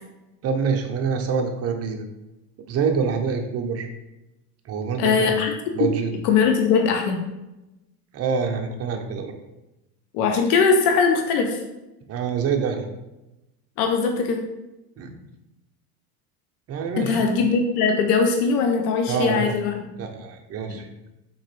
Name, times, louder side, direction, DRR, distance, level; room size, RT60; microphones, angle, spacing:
voice 1, 0.4-2.0 2.7-3.9 4.6-5.4 5.7-6.1 8.1-9.3 12.1-12.9 15.0-15.1 16.7-17.3 19.1-19.5 20.0-20.9, right 6 dB, 35° right, 4 dB, 0.6 m, -26 dB
voice 2, 5.0-5.5 5.8-5.9 6.2-7.2 10.1-11.6 13.8-14.4 17.0-19.9 20.7-20.8, left 5 dB, 85° left, 4 dB, 0.7 m, -20 dB
3.7 x 2.9 x 3.0 m, 0.97 s
supercardioid pair, 105°, 45 cm